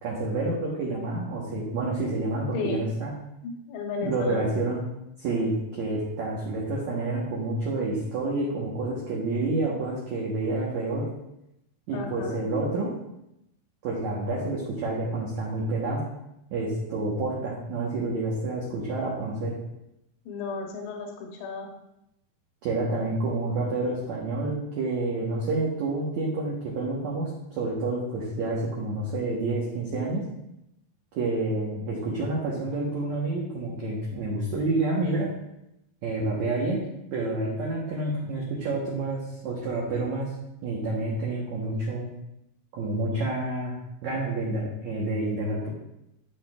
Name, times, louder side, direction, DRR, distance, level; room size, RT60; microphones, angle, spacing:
voice 1, 0.0-3.1 4.0-4.8 5.2-11.1 11.9-12.9 13.8-16.0 16.5-19.5 22.6-30.2 31.1-35.3 36.0-36.8 37.1-40.3 40.6-42.0 42.7-43.7 44.0-45.7, right 2 dB, 80° right, -5 dB, 1.6 m, -28 dB
voice 2, 3.4-4.6 11.9-12.4 20.3-21.7, left 4 dB, 80° left, 2 dB, 3.1 m, -34 dB
12.5 x 5.1 x 2.4 m, 0.84 s
omnidirectional pair, 5.0 m